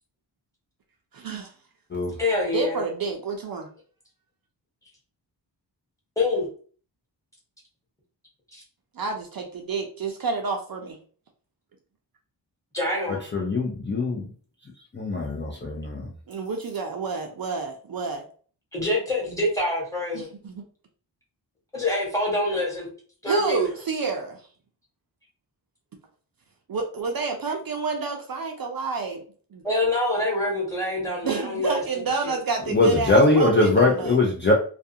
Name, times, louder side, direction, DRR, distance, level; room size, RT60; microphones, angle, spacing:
voice 1, 1.1-1.5 2.5-3.7 9.0-11.0 16.3-18.3 20.1-20.7 23.3-24.4 26.7-29.2 31.2-34.2, right 4 dB, 55° right, 3 dB, 0.5 m, -29 dB
voice 2, 2.2-2.8 6.2-6.5 8.5-8.6 12.7-13.2 18.7-20.3 21.7-22.9 23.2-23.7 29.6-31.8 32.2-32.3, left 1 dB, 5° left, -3 dB, 1.1 m, -25 dB
voice 3, 13.3-14.2 14.9-16.0 32.7-34.5, left 2 dB, 25° left, -3 dB, 0.4 m, -21 dB
2.3 x 2.3 x 2.7 m, 0.43 s
wide cardioid pair, 140°, 44 cm